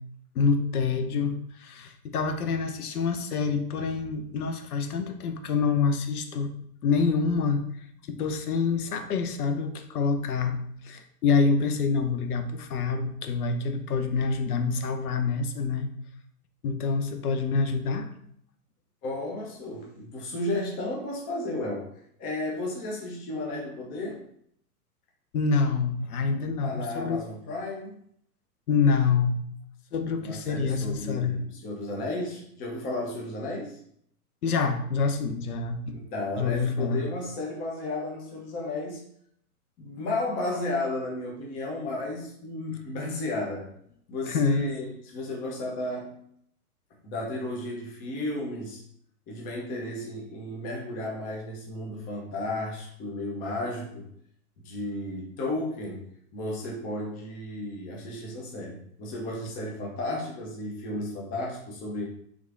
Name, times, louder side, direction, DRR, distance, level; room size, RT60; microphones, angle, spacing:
voice 1, 0.3-6.5 6.8-10.6 10.8-15.9 16.6-18.1 25.3-27.3 28.7-29.3 29.9-31.4 34.4-36.0 36.4-37.0 44.3-44.6, left 5 dB, 75° left, 7 dB, 0.7 m, -26 dB
voice 2, 19.0-21.9 22.2-24.2 26.6-27.9 30.2-33.8 35.9-39.1 39.8-43.7 44.1-46.2 47.0-48.8 49.3-54.1 54.6-62.1, left 2 dB, 20° left, -2 dB, 0.7 m, -33 dB
3.5 x 3.1 x 2.5 m, 0.67 s
hypercardioid pair, 120°, 46 cm